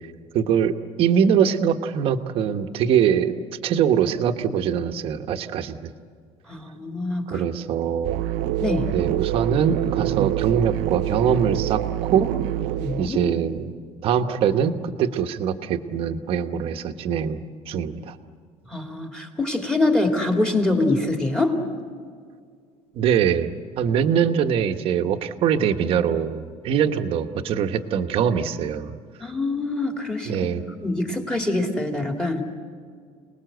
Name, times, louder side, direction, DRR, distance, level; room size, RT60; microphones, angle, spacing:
voice 1, 0.3-3.4 3.6-5.9 7.3-8.2 8.9-12.3 13.0-13.7 14.0-18.2 22.9-23.5 23.8-29.0 30.3-30.6, right 8 dB, 45° right, 7 dB, 1.2 m, -23 dB
voice 2, 6.5-7.4 8.6-8.9 12.8-13.2 18.7-21.6 29.2-30.4 30.8-32.4, left 2 dB, 5° left, 3 dB, 2.4 m, -24 dB
sound 1, 8.0-13.1, right 14 dB, 85° right, 0.6 m, -26 dB
29.0 x 20.0 x 8.0 m, 2.1 s
cardioid pair, 170°, 13 cm